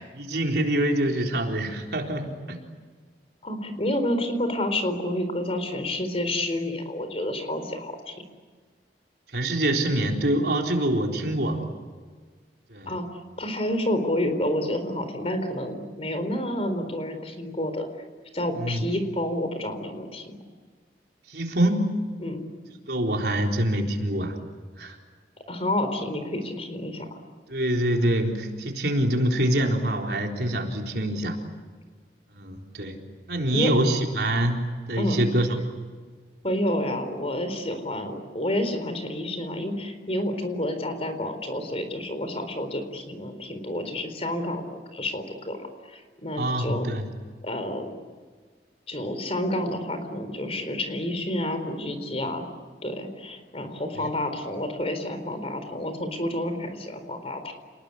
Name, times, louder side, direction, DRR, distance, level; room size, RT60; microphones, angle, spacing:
voice 1, 0.2-2.6 9.3-11.6 12.7-12.9 18.6-18.8 21.3-21.9 22.9-24.4 24.8-25.0 27.5-31.4 32.3-33.0 33.3-34.6 34.9-35.6 46.4-47.1, right 1 dB, 65° right, 1 dB, 4.1 m, -25 dB
voice 2, 3.4-8.1 12.9-17.9 18.3-20.4 22.2-22.4 25.5-27.2 33.5-33.7 35.0-35.4 36.4-46.9 47.4-47.9 48.9-52.5 52.8-57.5, left 1 dB, 35° left, 8 dB, 4.1 m, -29 dB
29.0 x 20.5 x 10.0 m, 1.5 s
head